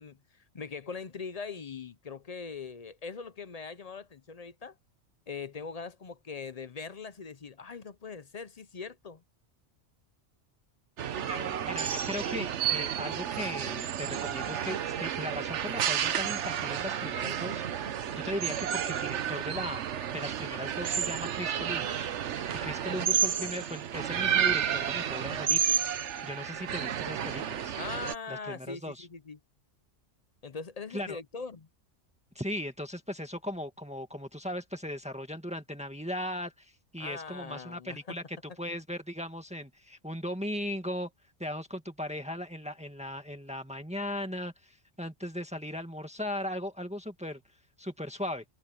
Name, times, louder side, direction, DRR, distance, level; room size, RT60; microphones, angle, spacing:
voice 1, 0.0-4.8 5.3-9.2 27.8-29.4 30.4-31.7 37.0-38.2, left 5 dB, 40° left, 0.7 m, -41 dB
sound 1, 11.0-28.2, right 9 dB, 75° right, 1.1 m, -31 dB
voice 2, 11.2-19.8 20.1-27.8 28.3-29.1 30.9-31.2 32.4-41.1 41.4-47.4 47.8-48.4, left 1 dB, 5° right, 1.9 m, -38 dB
omnidirectional pair, 1.2 m